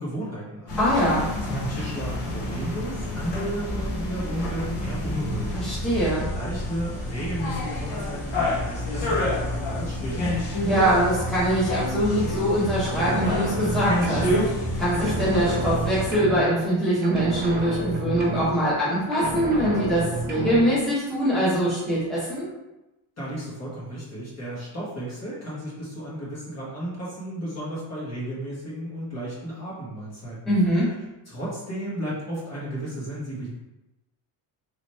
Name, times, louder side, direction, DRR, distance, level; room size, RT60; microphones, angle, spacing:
voice 1, 0.0-0.7 1.4-5.7 6.3-10.3 23.2-30.6 31.3-33.5, right 1 dB, 35° left, -7 dB, 1.3 m, -33 dB
sound 1, 0.7-16.1, left 1 dB, 60° left, 1.1 m, -28 dB
voice 2, 0.8-1.3 5.5-6.3 10.6-22.5 30.5-30.9, right 1 dB, ahead, -10 dB, 1.0 m, -23 dB
sound 2, 12.8-14.7 14.9-16.8 17.0-18.9 19.1-20.8, right 2 dB, 25° right, 0.4 m, -30 dB
3.2 x 3.0 x 4.2 m, 0.99 s
cardioid pair, 175°, 48 cm